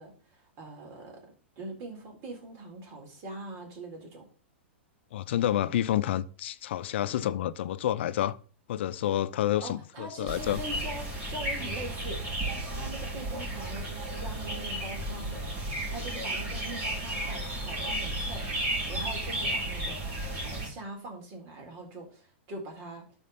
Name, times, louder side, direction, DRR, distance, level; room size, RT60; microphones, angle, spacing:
voice 1, 0.0-4.3 9.6-15.4 15.9-23.0, right 2 dB, 40° right, 3.9 m, -43 dB
voice 2, 5.1-8.4 8.7-10.6, left 12 dB, 65° left, 0.6 m, -29 dB
sound 1, 10.3-20.7, right 1 dB, 25° right, 4.7 m, -33 dB
12.0 x 4.7 x 4.2 m
hypercardioid pair, 120°, 7 cm